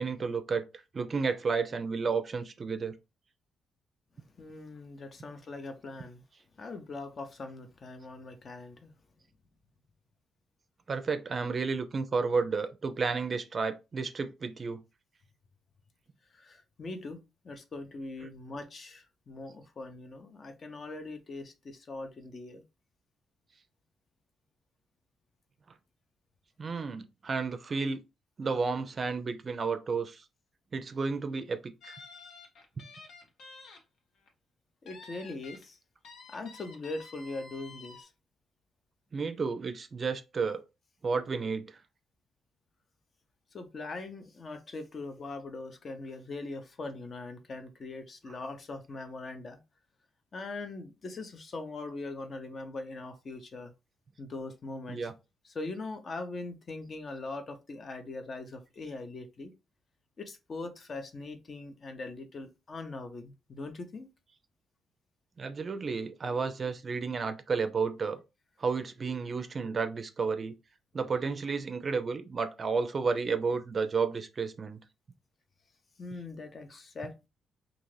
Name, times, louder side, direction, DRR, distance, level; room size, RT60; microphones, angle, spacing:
voice 1, 0.0-3.0 10.9-14.8 26.6-28.0 28.4-30.2 30.7-32.0 32.8-32.9 39.1-40.6 41.0-41.8 48.3-48.4 54.9-55.1 65.4-68.2 68.6-70.5 70.9-74.8, right 4 dB, 40° right, 0.4 m, -32 dB
voice 2, 4.4-6.2 6.6-8.9 16.3-17.2 17.4-22.6 34.8-35.8 36.3-38.1 43.5-49.6 50.3-53.7 54.2-55.1 55.4-59.5 60.2-64.1 76.0-77.3, left 3 dB, 45° left, 0.6 m, -41 dB
sound 1, 31.8-33.8 34.1-34.3 34.9-35.6 36.0-38.0, left 4 dB, 75° left, 0.9 m, -50 dB
2.4 x 2.4 x 3.2 m
cardioid pair, 80°, 0 cm